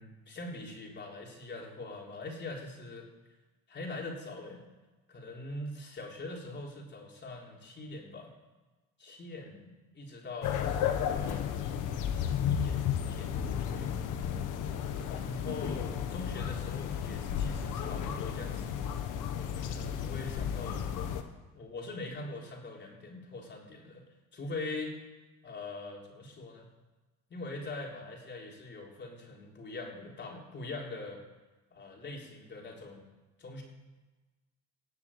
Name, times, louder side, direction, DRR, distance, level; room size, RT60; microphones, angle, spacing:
voice 1, 0.0-3.1 3.7-4.6 5.1-8.3 9.0-11.5 12.1-13.9 15.1-18.8 19.3-20.9 21.5-24.0 24.3-25.0 25.4-26.7 27.3-31.2 31.7-33.1 33.4-33.6, left 2 dB, 35° left, -1 dB, 3.9 m, -42 dB
sound 1, 10.4-21.2, left 8 dB, 75° left, 1.6 m, -33 dB
19.0 x 7.4 x 8.5 m, 1.2 s
cardioid pair, 135°, 32 cm